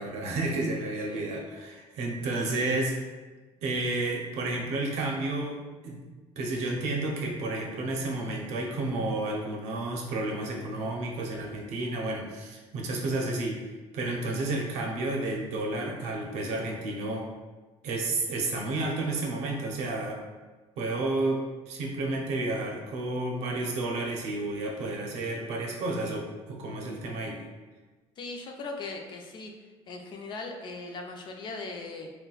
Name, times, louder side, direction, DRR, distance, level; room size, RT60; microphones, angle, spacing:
voice 1, 0.0-3.0 3.6-6.0 6.4-13.7 13.9-17.3 17.8-20.2 20.8-27.4, right 2 dB, 80° right, 0 dB, 0.6 m, -31 dB
voice 2, 28.2-29.5 29.9-32.1, left 3 dB, 45° left, 3 dB, 0.4 m, -39 dB
3.8 x 2.2 x 2.3 m, 1.3 s
cardioid pair, 135°, 11 cm